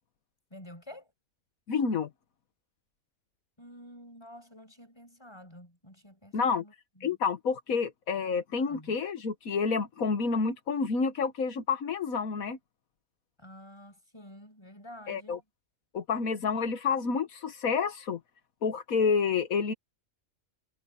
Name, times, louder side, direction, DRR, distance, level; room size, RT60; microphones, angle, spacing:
voice 1, 0.5-1.1 3.6-7.2 7.7-7.8 8.6-9.0 13.4-15.4, equal, 20° left, 5.5 m, -50 dB
voice 2, 1.7-2.1 6.3-6.6 7.0-12.6 15.1-15.4 15.9-18.2 18.6-19.7, left 5 dB, 85° left, 1.7 m, -29 dB
omnidirectional pair, 1.4 m